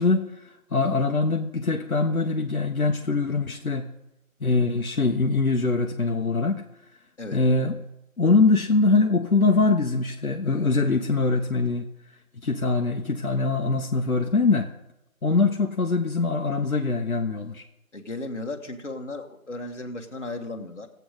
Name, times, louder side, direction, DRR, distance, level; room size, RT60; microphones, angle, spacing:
voice 1, 0.0-3.9 4.4-6.6 7.3-7.8 8.2-11.9 12.4-14.7 15.2-17.6, left 3 dB, 75° left, 2 dB, 1.2 m, -23 dB
voice 2, 17.9-20.9, left 2 dB, 55° left, 2 dB, 1.6 m, -35 dB
16.5 x 8.0 x 4.8 m, 0.87 s
figure-of-eight pair, 175°, 43 cm